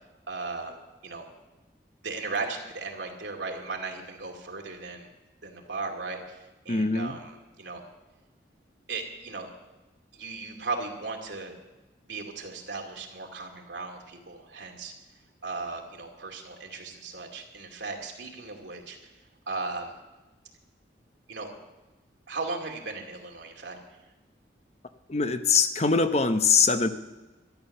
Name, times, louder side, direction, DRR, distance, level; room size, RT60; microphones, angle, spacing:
voice 1, 0.3-0.7 1.0-1.3 2.0-5.1 5.4-7.8 8.9-9.5 10.1-11.5 12.1-14.9 15.4-19.1 19.5-19.9 21.3-21.5 22.3-23.8, right 3 dB, 75° right, 1 dB, 2.5 m, -36 dB
voice 2, 6.7-7.2 25.1-26.9, left 5 dB, 35° left, 9 dB, 0.7 m, -23 dB
12.5 x 11.5 x 6.6 m, 1.1 s
head